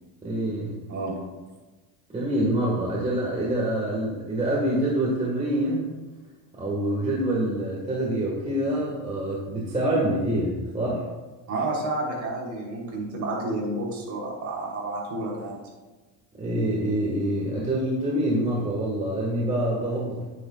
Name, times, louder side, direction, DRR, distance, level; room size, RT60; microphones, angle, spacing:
voice 1, 0.2-0.8 2.1-5.9 6.5-11.0 16.4-20.2, right 1 dB, 15° right, -4 dB, 1.6 m, -26 dB
voice 2, 11.5-15.6, right 2 dB, 40° right, -3 dB, 3.2 m, -30 dB
11.0 x 9.7 x 2.3 m, 1.2 s
cardioid pair, 145°, 47 cm